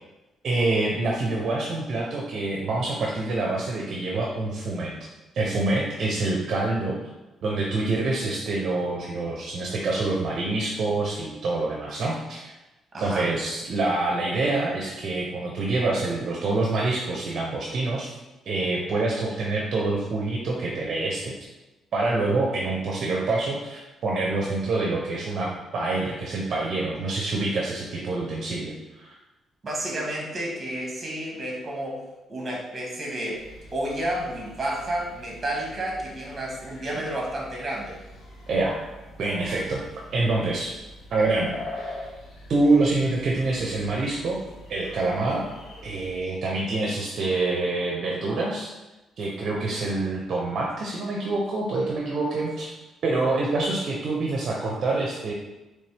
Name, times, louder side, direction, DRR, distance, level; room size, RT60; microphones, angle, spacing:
voice 1, 0.4-4.9 5.3-7.0 7.4-12.5 13.0-18.1 18.5-21.3 21.9-29.1 38.5-38.8 39.2-39.8 40.1-40.7 41.1-42.1 42.5-44.4 44.7-45.4 45.8-48.7 49.2-52.7 53.0-55.3, right 2 dB, 60° right, -2 dB, 0.7 m, -26 dB
voice 2, 12.9-13.3 29.6-33.4 33.7-38.0, right 1 dB, 30° right, -2 dB, 1.4 m, -31 dB
sound 1, 33.3-46.2, left 1 dB, 65° left, 0.9 m, -44 dB
4.1 x 3.2 x 3.4 m, 1.0 s
cardioid pair, 90°, 0 cm